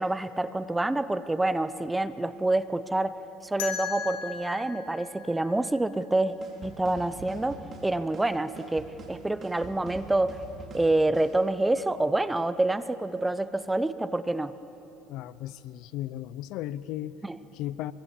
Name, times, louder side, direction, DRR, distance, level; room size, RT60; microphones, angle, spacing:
voice 1, 0.0-6.3 6.6-10.4 10.7-14.5 17.2-17.4, right 2 dB, 10° right, 14 dB, 0.8 m, -27 dB
sound 1, 3.6-6.5, left 8 dB, 90° left, 3.4 m, -38 dB
sound 2, 6.4-11.4, right 4 dB, 30° right, 4.5 m, -45 dB
voice 2, 15.1-17.2 17.5-17.9, left 13 dB, 65° left, 17 dB, 0.7 m, -35 dB
25.5 x 23.5 x 7.3 m, 3.0 s
supercardioid pair, 115°, 0 cm